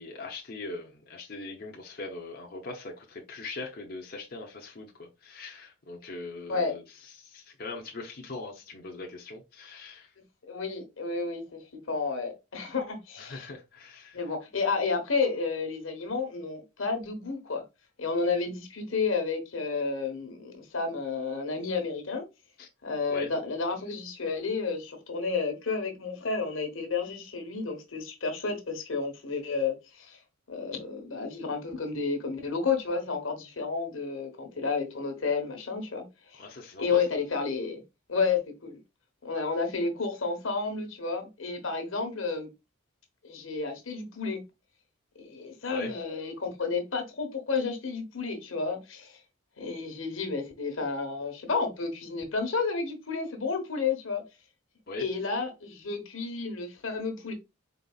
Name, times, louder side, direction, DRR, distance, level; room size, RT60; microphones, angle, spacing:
voice 1, 0.0-10.1 13.2-14.2 22.6-22.7 23.1-23.3 36.4-37.0 45.7-46.0 54.9-55.0, left 3 dB, 50° left, 0.7 m, -41 dB
voice 2, 10.4-11.6 11.9-13.5 14.1-17.6 18.0-22.2 22.8-30.2 30.5-36.1 36.3-36.5 36.8-37.8 38.1-38.8 39.2-42.5 43.2-44.4 45.2-49.2 49.6-54.2 55.0-57.3, left 4 dB, 85° left, 1.1 m, -31 dB
4.0 x 4.0 x 2.3 m
head